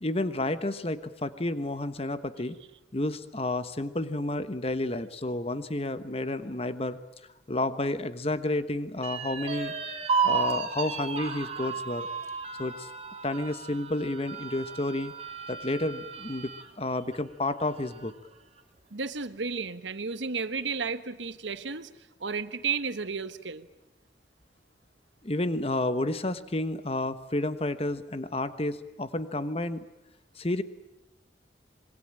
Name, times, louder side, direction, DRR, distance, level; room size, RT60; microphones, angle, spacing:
voice 1, 0.0-2.6 2.9-7.0 7.5-9.7 10.2-12.1 12.6-12.9 13.2-15.1 15.5-16.5 16.8-18.1 25.2-29.9 30.4-30.6, left 2 dB, 35° left, 12 dB, 1.2 m, -30 dB
sound 1, 9.0-16.7 17.1-17.2 17.6-18.3, right 5 dB, 35° right, 2.3 m, -33 dB
voice 2, 18.9-21.9 22.2-23.7, right 5 dB, 85° right, 12 dB, 1.3 m, -33 dB
26.5 x 22.0 x 8.9 m, 0.90 s
head